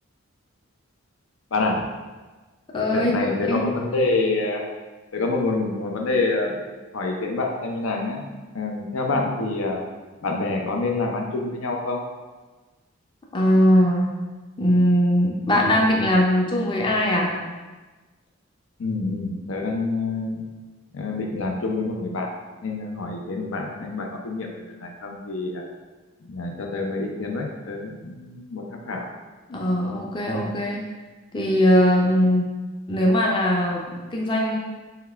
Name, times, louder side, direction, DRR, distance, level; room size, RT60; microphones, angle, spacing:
voice 1, 1.5-1.8 2.9-4.6 5.1-6.6 6.9-8.2 8.5-9.8 10.2-12.0 18.8-20.4 20.9-22.3 22.6-25.6 26.3-29.1, left 3 dB, 80° left, 1 dB, 0.6 m, -27 dB
voice 2, 2.7-3.1 3.5-3.6 13.3-14.1 14.6-17.3 29.5-30.8 31.3-32.5 32.9-34.6, equal, 25° left, -2 dB, 0.5 m, -20 dB
5.6 x 2.3 x 3.3 m, 1.3 s
head